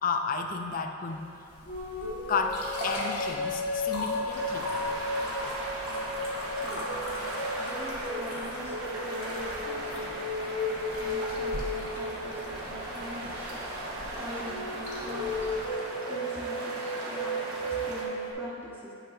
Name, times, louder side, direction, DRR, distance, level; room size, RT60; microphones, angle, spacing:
voice 1, 0.0-1.5 2.3-4.7, left 5 dB, 40° left, 5 dB, 0.3 m, -32 dB
sound 1, 1.5-15.7, left 2 dB, 85° left, 1.1 m, -40 dB
sound 2, 1.6-13.0 14.4-18.3, left 1 dB, 60° left, 1.3 m, -35 dB
sound 3, 4.3-18.0, right 1 dB, 70° right, 1.0 m, -38 dB
voice 2, 7.5-8.7 9.0-10.4 11.0-13.8 14.1-15.5 16.1-18.9, equal, 10° right, -6 dB, 0.8 m, -43 dB
8.8 x 5.9 x 2.4 m, 2.7 s
head